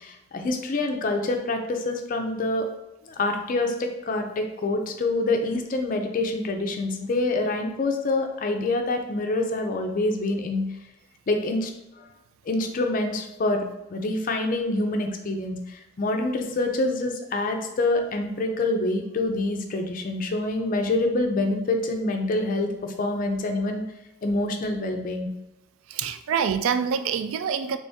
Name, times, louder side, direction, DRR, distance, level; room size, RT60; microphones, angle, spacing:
voice 1, 0.0-2.7 3.1-10.7 11.3-11.7 12.0-12.1 12.5-13.6 13.9-23.8 24.2-25.3, left 2 dB, 40° left, 4 dB, 0.4 m, -26 dB
voice 2, 25.9-27.8, right 7 dB, 80° right, 11 dB, 0.3 m, -26 dB
3.4 x 3.0 x 2.7 m, 0.94 s
head